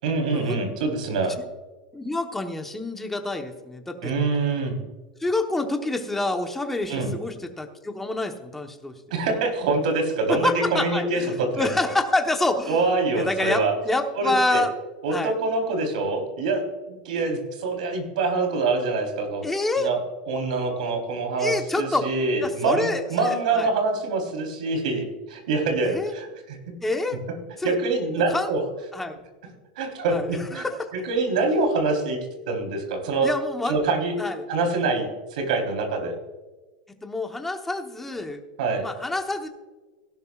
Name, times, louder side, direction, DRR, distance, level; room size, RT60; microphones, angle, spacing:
voice 1, 0.0-1.3 4.0-4.8 6.9-7.1 9.1-11.7 12.7-13.7 14.2-14.6 15.0-19.5 19.8-20.0 20.3-26.6 27.6-28.6 29.8-30.7 30.9-33.3 33.6-34.2 34.5-36.2 38.6-38.9, right 3 dB, 85° right, 4 dB, 3.8 m, -25 dB
voice 2, 1.9-4.1 5.2-8.9 10.3-12.9 13.1-14.7 15.1-15.3 19.4-19.9 21.4-22.1 22.4-23.7 25.8-26.1 26.8-27.2 27.6-27.8 28.3-28.6 28.9-29.2 30.1-30.9 33.2-33.8 34.2-34.4 37.0-38.4 38.8-39.5, left 2 dB, 5° left, 5 dB, 1.0 m, -27 dB
17.0 x 11.5 x 2.4 m, 1.2 s
supercardioid pair, 170°, 4 cm